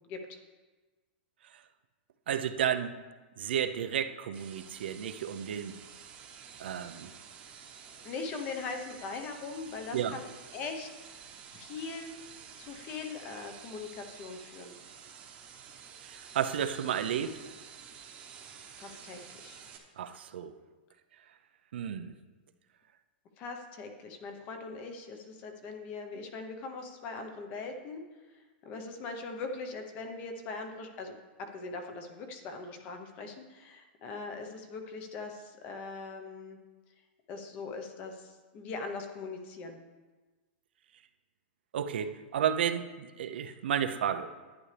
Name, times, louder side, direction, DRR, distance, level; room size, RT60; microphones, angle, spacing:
voice 1, 0.1-0.4 8.0-10.3 10.5-10.9 11.5-12.1 12.6-14.7 18.8-19.6 23.4-28.0 28.3-36.6 37.3-39.8, left 4 dB, 25° left, 5 dB, 0.9 m, -41 dB
voice 2, 2.3-3.0 3.4-5.7 6.6-7.1 9.9-10.2 16.0-17.4 20.0-20.5 21.7-22.1 41.7-44.3, right 9 dB, 75° right, 8 dB, 0.7 m, -32 dB
sound 1, 4.3-19.8, right 7 dB, 20° right, 1.0 m, -50 dB
11.5 x 9.6 x 3.4 m, 1.3 s
supercardioid pair, 170°, 6 cm